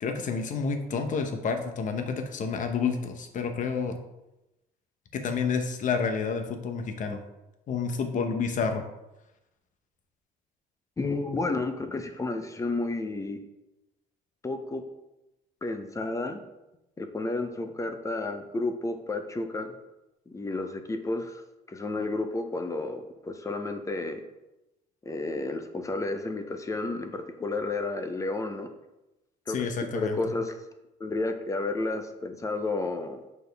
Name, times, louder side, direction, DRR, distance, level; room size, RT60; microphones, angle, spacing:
voice 1, 0.0-4.0 5.1-7.2 7.7-8.8 29.5-30.2, left 5 dB, 50° left, 6 dB, 0.9 m, -29 dB
voice 2, 11.0-13.4 14.4-14.8 15.6-16.4 17.0-19.7 20.3-21.4 21.7-24.2 25.1-28.7 29.5-30.5 31.0-33.2, left 2 dB, 20° left, 7 dB, 0.7 m, -31 dB
6.8 x 4.2 x 3.4 m, 0.95 s
cardioid pair, 110°, 17 cm